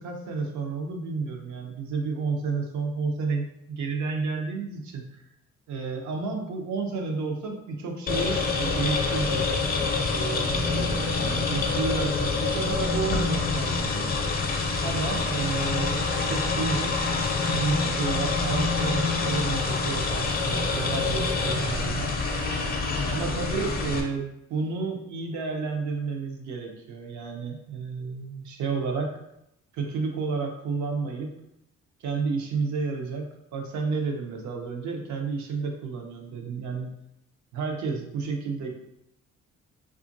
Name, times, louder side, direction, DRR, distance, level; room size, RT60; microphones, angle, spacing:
voice 1, 0.0-5.2 5.7-9.4 10.1-14.1 14.8-17.0 17.4-22.2 23.1-29.1 29.7-31.3 32.0-36.9 37.5-38.7, right 4 dB, 70° right, 2 dB, 0.7 m, -31 dB
sound 1, 8.1-24.0, left 4 dB, 30° left, 0.5 m, -26 dB
2.8 x 2.4 x 2.6 m, 0.82 s
cardioid pair, 90°, 30 cm